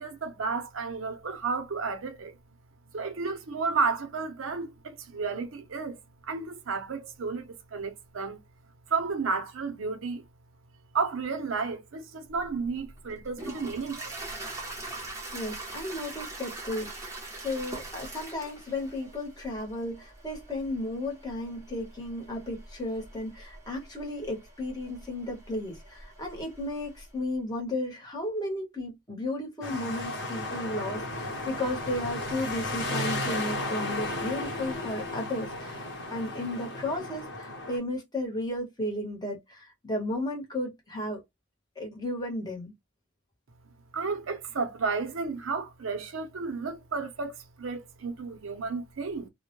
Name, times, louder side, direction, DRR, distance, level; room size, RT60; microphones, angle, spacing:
voice 1, 0.0-2.4 2.9-8.4 8.9-10.2 10.9-14.2 43.9-49.3, right 4 dB, 85° right, 0.6 m, -32 dB
Toilet flush, 12.4-27.1, right 2 dB, 15° right, 0.6 m, -43 dB
voice 2, 15.3-41.2 41.8-42.7, left 1 dB, 20° left, 0.9 m, -34 dB
sound 1, 29.6-37.8, left 2 dB, 60° left, 0.9 m, -34 dB
2.2 x 2.0 x 2.8 m
head